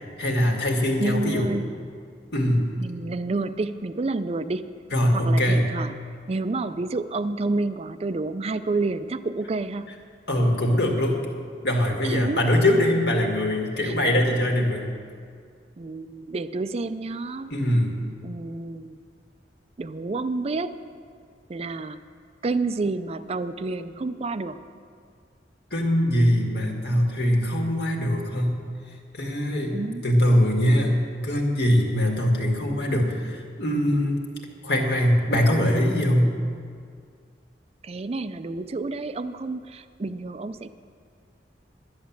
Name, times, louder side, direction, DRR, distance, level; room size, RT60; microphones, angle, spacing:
voice 1, 0.2-1.5 2.3-2.7 4.9-5.7 10.3-11.3 11.6-14.9 17.5-18.0 25.7-28.6 29.1-34.2 34.6-36.3, equal, 65° left, 1 dB, 1.9 m, -22 dB
voice 2, 1.0-1.7 2.8-4.7 5.1-6.0 6.3-9.9 12.0-12.4 13.8-14.0 15.8-17.5 18.2-19.0 19.8-20.8 21.5-22.0 22.4-24.6 29.7-30.0 37.8-40.7, right 3 dB, 35° right, 11 dB, 0.4 m, -29 dB
11.0 x 10.5 x 7.3 m, 2.2 s
head